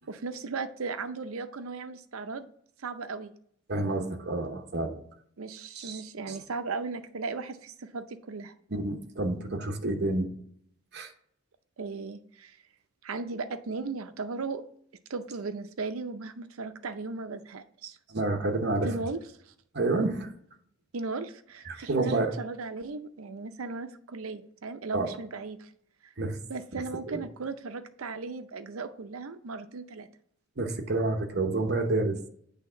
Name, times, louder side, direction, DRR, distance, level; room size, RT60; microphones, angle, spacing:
voice 1, 0.1-2.5 2.8-3.3 5.4-8.5 11.8-12.6 13.0-14.6 15.1-18.0 18.8-19.2 20.9-25.7 26.0-26.1 26.5-30.1, right 4 dB, 85° right, 10 dB, 0.6 m, -36 dB
voice 2, 3.7-4.9 5.8-6.0 6.3-6.4 8.7-10.3 10.9-11.1 18.1-18.9 19.7-20.3 21.6-22.3 24.9-25.2 26.2-26.4 26.7-27.2 30.6-32.3, right 2 dB, 55° right, 4 dB, 1.0 m, -29 dB
8.4 x 3.5 x 5.6 m, 0.65 s
head